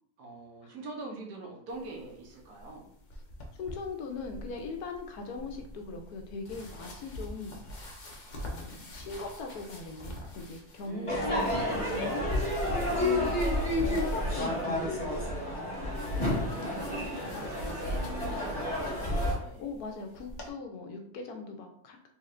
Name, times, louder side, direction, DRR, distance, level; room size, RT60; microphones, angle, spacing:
voice 1, 0.2-2.9 10.8-12.0 15.7-19.7, right 2 dB, 70° right, -1 dB, 1.5 m, -44 dB
sound 1, 1.7-20.5, left 1 dB, 50° left, 0.5 m, -46 dB
voice 2, 3.6-7.6 8.4-13.3 13.8-15.1 19.6-22.1, left 3 dB, 70° left, 4 dB, 1.1 m, -40 dB
Crowd / Fireworks, 11.1-19.3, left 1 dB, 20° left, 1.1 m, -30 dB
4.2 x 3.4 x 2.5 m, 0.67 s
omnidirectional pair, 1.7 m